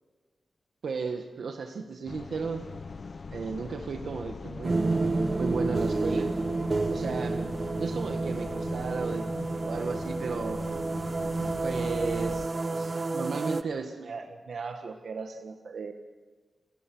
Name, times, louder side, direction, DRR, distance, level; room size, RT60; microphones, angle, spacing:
voice 1, 0.8-2.7 3.3-4.8 5.4-6.3 6.9-7.5 7.8-10.6 11.6-15.9, right 5 dB, 85° right, 5 dB, 1.5 m, -35 dB
sound 1, 2.1-12.5, left 4 dB, 50° left, 0.8 m, -41 dB
sound 2, 4.6-13.6, right 3 dB, 40° right, 0.9 m, -30 dB
28.0 x 18.5 x 6.2 m, 1.4 s
wide cardioid pair, 110°, 0 cm